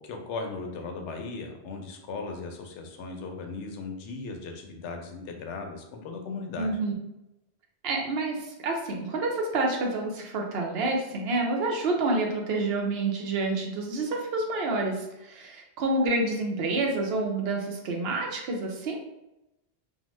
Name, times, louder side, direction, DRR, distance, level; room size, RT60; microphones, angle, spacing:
voice 1, 0.0-6.8, left 4 dB, 85° left, 3 dB, 0.9 m, -37 dB
voice 2, 6.6-6.9 7.8-19.0, right 2 dB, 70° right, 0 dB, 0.8 m, -28 dB
2.9 x 2.0 x 3.0 m, 0.90 s
omnidirectional pair, 1.2 m